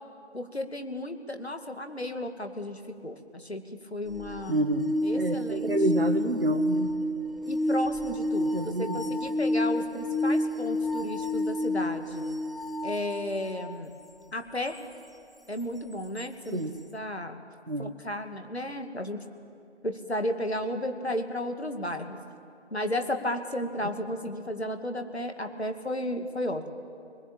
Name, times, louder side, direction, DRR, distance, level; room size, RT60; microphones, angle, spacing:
voice 1, 0.3-4.6 5.0-5.7 7.4-12.2 12.8-13.9 14.3-14.8 15.5-16.7 16.9-17.4 17.8-19.2 19.8-22.2 22.7-26.7, left 1 dB, 65° left, 6 dB, 2.4 m, -33 dB
sound 1, 4.1-13.9 16.2-16.3, left 1 dB, ahead, 0.5 m, -29 dB
voice 2, 4.5-6.9 8.5-9.1 16.5-16.8 17.7-17.9 23.8-23.9, right 2 dB, 55° right, 4 dB, 1.7 m, -29 dB
24.5 x 21.0 x 8.8 m, 2.6 s
figure-of-eight pair, 170°, 35 cm